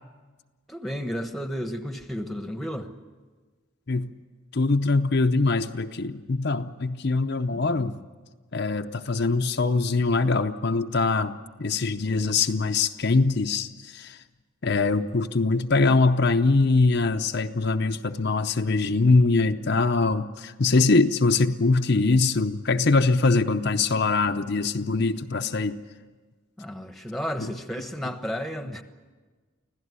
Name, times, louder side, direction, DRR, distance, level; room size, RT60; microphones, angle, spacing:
voice 1, 0.7-2.9 7.5-8.0 26.6-28.8, equal, ahead, 7 dB, 1.2 m, -33 dB
voice 2, 4.5-8.0 8.5-14.2 14.6-25.8 27.4-27.5 28.0-28.1, left 3 dB, 50° left, 6 dB, 0.7 m, -23 dB
25.0 x 16.5 x 9.6 m, 1.4 s
head